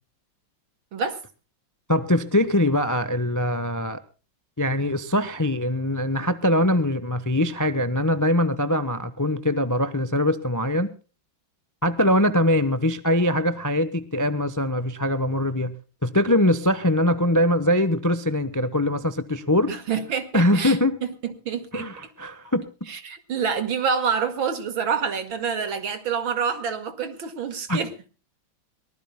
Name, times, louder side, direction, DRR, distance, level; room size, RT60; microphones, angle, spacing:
voice 1, 1.9-4.0 4.6-10.9 11.8-15.7 16.0-19.7 20.3-21.0 21.7-22.6 27.7-27.8, left 1 dB, 20° left, 12 dB, 0.5 m, -22 dB
voice 2, 19.7-20.8 21.2-21.9 22.9-27.9, right 6 dB, 85° right, 9 dB, 2.7 m, -27 dB
23.0 x 20.0 x 2.2 m, 0.35 s
omnidirectional pair, 2.1 m